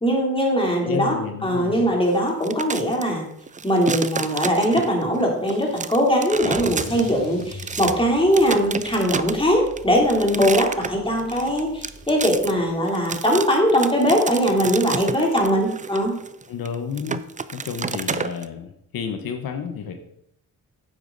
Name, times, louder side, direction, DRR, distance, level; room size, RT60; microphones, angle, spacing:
voice 1, 0.0-3.3 3.6-16.1, equal, 15° left, -1 dB, 3.2 m, -21 dB
voice 2, 0.8-1.9 16.5-17.2 17.5-19.9, left 6 dB, 80° left, 6 dB, 1.0 m, -31 dB
sound 1, 2.3-3.0 3.5-5.1 5.5-8.0 8.3-18.4, right 5 dB, 20° right, 0.5 m, -30 dB
Car / Engine starting / Accelerating revving vroom, 5.5-12.7, equal, 45° left, 4.5 m, -42 dB
8.9 x 8.6 x 4.0 m, 0.75 s
cardioid pair, 80°, 34 cm